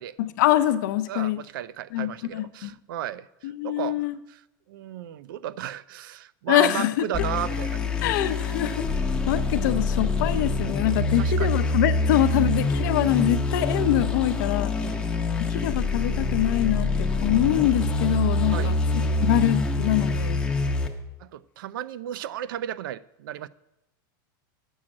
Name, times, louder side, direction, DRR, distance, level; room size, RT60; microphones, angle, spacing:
voice 1, 0.2-1.4 1.9-2.7 3.4-4.1 6.5-7.0 8.0-8.8 9.3-14.7 15.5-20.4, left 13 dB, 60° left, 0.6 m, -24 dB
voice 2, 1.1-4.4 4.7-7.8 11.1-11.6 14.8-15.1 18.5-18.8 21.2-23.5, right 11 dB, 75° right, 0.4 m, -34 dB
sound 1, 7.1-20.9, left 3 dB, 10° left, 0.7 m, -25 dB
8.6 x 6.4 x 7.3 m
supercardioid pair, 175°, 11 cm